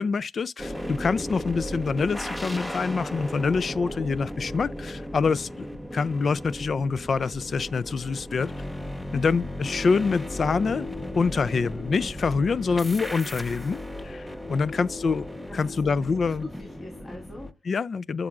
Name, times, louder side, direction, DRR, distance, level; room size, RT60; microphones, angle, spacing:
voice 1, 0.0-5.7 5.9-8.5 9.1-10.9 11.1-13.8 14.0-15.3 15.5-16.5 17.7-18.3, left 5 dB, 50° left, 0.3 m, -26 dB
sound 1, 0.6-17.5, left 1 dB, 5° left, 0.7 m, -35 dB
voice 2, 9.1-9.5 14.5-16.1 16.4-17.6 18.2-18.3, left 1 dB, 30° left, 2.1 m, -45 dB
13.5 x 4.9 x 2.4 m
cardioid pair, 90°, 0 cm